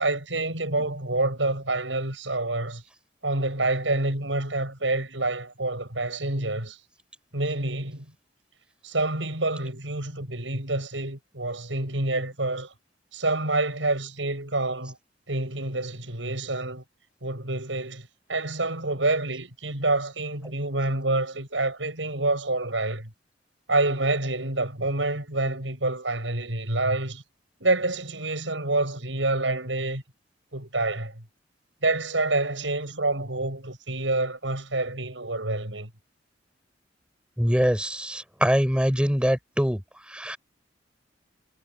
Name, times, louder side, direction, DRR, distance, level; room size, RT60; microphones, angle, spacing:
voice 1, 0.0-2.8 3.2-6.8 7.3-8.1 8.8-12.7 13.1-15.0 15.3-16.8 17.2-23.1 23.7-27.2 27.6-30.0 30.5-31.2 31.8-35.9, right 2 dB, 90° right, 7.6 m, -27 dB
voice 2, 37.4-39.8 40.1-40.4, equal, 5° right, 6.7 m, -23 dB
head